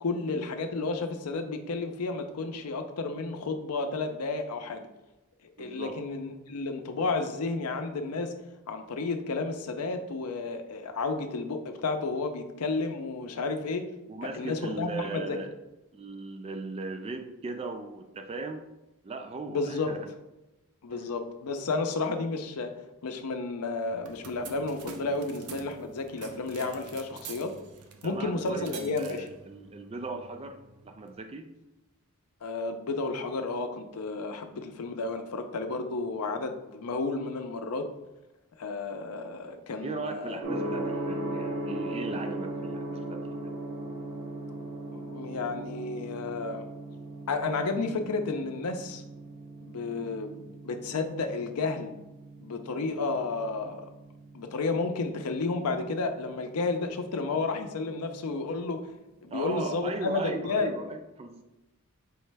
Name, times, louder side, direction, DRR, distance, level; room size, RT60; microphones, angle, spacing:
voice 1, 0.0-4.9 5.6-8.3 8.7-13.9 14.2-15.4 19.5-19.9 20.8-22.7 23.0-27.5 28.0-29.3 32.4-37.9 38.6-40.4 44.9-46.7 47.3-49.0 49.6-51.9 52.4-53.9 54.3-58.8 59.2-60.7, left 3 dB, 90° left, 6 dB, 0.5 m, -32 dB
voice 2, 5.6-6.0 14.1-15.6 15.9-18.6 19.0-20.1 20.9-21.1 28.0-31.5 39.8-43.5 59.3-61.4, right 3 dB, 25° right, 6 dB, 0.3 m, -38 dB
sound 1, 23.8-31.2, right 5 dB, 85° right, 0.5 m, -47 dB
Gong, 40.4-58.3, right 1 dB, 60° right, 1.0 m, -39 dB
4.7 x 3.1 x 3.3 m, 1.0 s
head